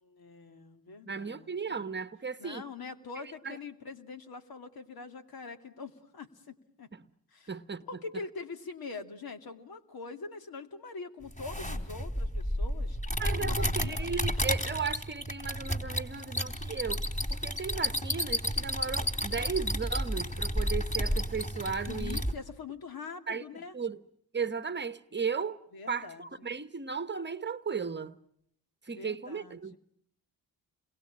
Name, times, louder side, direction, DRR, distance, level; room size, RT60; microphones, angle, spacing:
voice 1, 0.0-1.8 2.4-6.9 7.3-7.5 7.9-13.0 13.4-14.1 21.8-23.8 25.7-26.5 28.9-29.8, left 4 dB, 60° left, 2.6 m, -44 dB
voice 2, 1.1-2.6 3.4-3.6 6.9-7.0 7.5-7.8 13.2-17.0 17.3-22.2 23.3-23.4 23.7-24.0 24.3-25.6 25.9-28.2 28.8-29.8, right 5 dB, 25° right, 1.2 m, -35 dB
sound 1, 11.3-22.3, equal, 20° left, 3.4 m, -32 dB
29.0 x 22.5 x 8.8 m
supercardioid pair, 55°, 41 cm